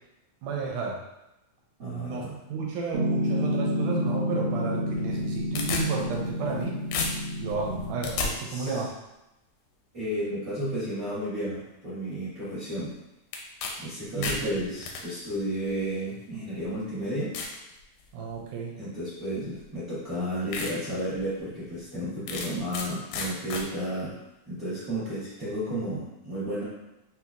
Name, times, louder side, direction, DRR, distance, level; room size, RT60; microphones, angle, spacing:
voice 1, 0.4-1.0 1.8-6.8 7.4-8.9 14.1-14.5 18.1-18.7, right 4 dB, 85° right, -2 dB, 2.1 m, -32 dB
voice 2, 1.8-2.4 8.5-8.8 9.9-12.9 13.8-17.3 18.8-24.2 24.4-26.6, equal, 50° right, -12 dB, 1.0 m, -32 dB
Piano, 2.9-8.0, equal, 65° right, 2.0 m, -29 dB
sound 1, 5.1-6.6 6.9-8.3 13.3-13.7 14.0-15.0 15.9-16.0 16.6-16.7 17.3-17.6 18.1-18.4 19.6-19.7 20.1-20.2 20.5-20.7 21.2-21.3 22.3-22.9 23.1-23.6, left 4 dB, 80° left, 2.0 m, -32 dB
6.0 x 2.9 x 2.3 m, 0.92 s
omnidirectional pair, 3.8 m